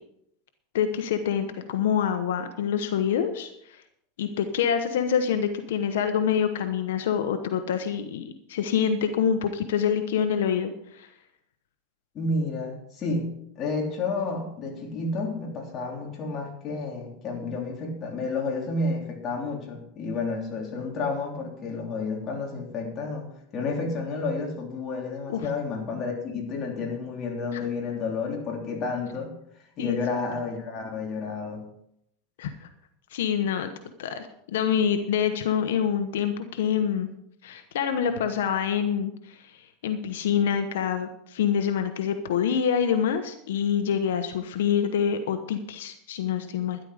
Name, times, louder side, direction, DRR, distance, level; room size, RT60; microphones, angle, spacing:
voice 1, 0.7-3.8 4.2-8.2 8.5-11.1 25.3-25.5 27.5-27.6 29.8-30.0 32.4-32.7 33.1-33.7 34.0-37.1 37.4-46.8, left 8 dB, 90° left, 8 dB, 1.1 m, -26 dB
voice 2, 12.1-13.3 13.6-29.3 29.8-31.6, left 3 dB, 35° left, 0 dB, 3.4 m, -31 dB
12.5 x 11.0 x 5.0 m, 0.75 s
supercardioid pair, 135°, 0 cm